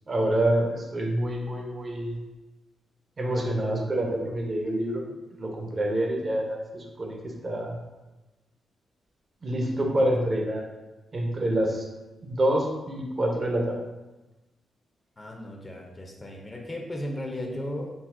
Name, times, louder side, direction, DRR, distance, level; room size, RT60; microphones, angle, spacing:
voice 1, 0.1-2.2 3.2-5.0 5.4-7.8 9.4-10.7 11.1-11.9 12.2-13.8, right 1 dB, 45° right, 0 dB, 0.7 m, -27 dB
voice 2, 15.2-17.9, left 1 dB, 35° left, 1 dB, 0.6 m, -36 dB
3.9 x 2.0 x 2.5 m, 1.1 s
hypercardioid pair, 45°, 0 cm